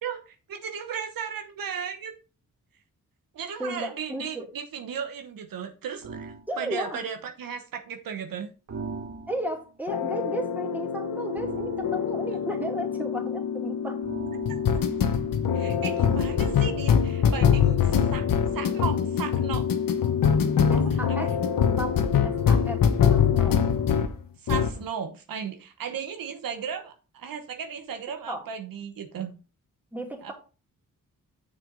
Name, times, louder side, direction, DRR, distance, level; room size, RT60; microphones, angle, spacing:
voice 1, 0.0-2.1 3.3-8.5 14.7-14.8 15.5-18.3 18.5-19.6 20.8-21.3 24.4-29.3 30.2-30.3, right 7 dB, 85° right, 5 dB, 1.0 m, -35 dB
voice 2, 3.6-4.4 6.5-7.0 9.3-14.0 20.7-21.3 21.8-21.9 22.2-22.8 23.1-23.6 28.3-28.4 29.9-30.3, right 1 dB, 5° right, 0 dB, 2.7 m, -34 dB
sound 1, 6.0-6.5 8.7-9.6 11.3-12.5 14.0-15.4, right 4 dB, 55° right, 1.7 m, -39 dB
sound 2, 9.9-24.1 24.5-24.8, left 7 dB, 80° left, 1.1 m, -24 dB
6.8 x 6.4 x 3.9 m, 0.35 s
cardioid pair, 65°, 33 cm